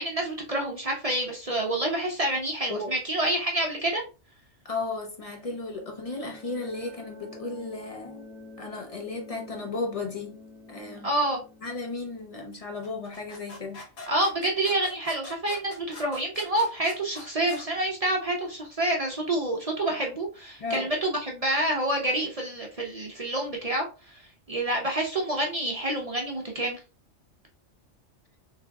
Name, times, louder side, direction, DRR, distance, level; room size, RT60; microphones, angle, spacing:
voice 1, 0.0-4.0 11.0-11.4 14.1-24.2 24.5-26.8, right 1 dB, 45° right, 0.5 m, -28 dB
voice 2, 4.6-8.3 8.6-10.4 10.7-11.1 11.6-13.8 20.6-20.9, left 3 dB, 50° left, 0.4 m, -34 dB
sound 1, 5.2-13.7, left 2 dB, 5° left, 0.7 m, -49 dB
sound 2, 12.8-17.7, left 3 dB, 80° left, 1.3 m, -44 dB
3.5 x 3.3 x 2.2 m
omnidirectional pair, 1.3 m